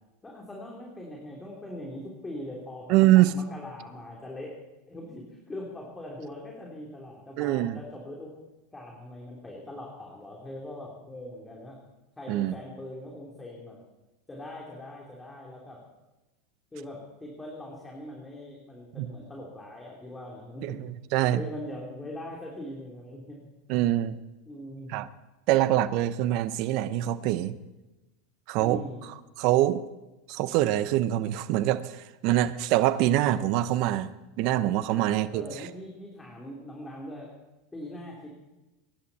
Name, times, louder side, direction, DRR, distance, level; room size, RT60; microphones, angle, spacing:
voice 1, 0.2-4.5 4.9-8.3 8.7-11.8 12.2-13.8 14.3-15.8 16.7-20.8 21.3-23.5 24.5-24.9 28.6-29.1 34.9-35.0 35.3-37.3 37.7-38.3, left 1 dB, 15° left, -2 dB, 3.4 m, -41 dB
voice 2, 2.9-3.3 7.4-7.8 12.3-12.5 19.0-19.1 20.6-21.4 23.7-24.2 24.9-25.1 25.5-27.6 28.5-28.8 29.4-29.8 30.3-34.1 34.4-35.4, right 14 dB, 55° right, 15 dB, 0.8 m, -24 dB
23.0 x 11.0 x 4.3 m, 1.1 s
hypercardioid pair, 95°, 0 cm